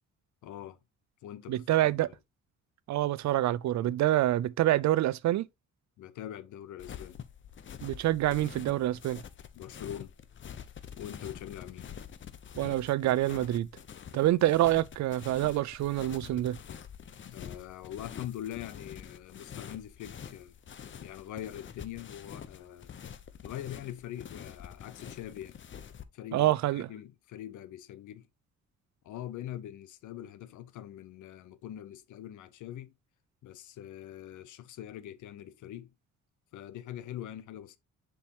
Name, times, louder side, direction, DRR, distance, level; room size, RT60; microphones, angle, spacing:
voice 1, 0.4-0.8 1.2-1.6 2.0-2.2 6.0-7.2 9.5-10.1 11.0-11.9 17.3-20.5 21.0-22.9 23.4-25.6 26.1-28.3 29.0-32.9 33.4-35.9 36.5-37.8, left 11 dB, 75° left, 0.8 m, -43 dB
voice 2, 1.5-2.1 2.9-5.5 7.8-9.2 12.6-13.7 14.1-16.6 26.3-26.9, right 14 dB, 65° right, 0.5 m, -26 dB
sound 1, 6.8-26.0, left 8 dB, 40° left, 0.7 m, -46 dB
7.0 x 4.7 x 2.8 m
cardioid pair, 90°, 30 cm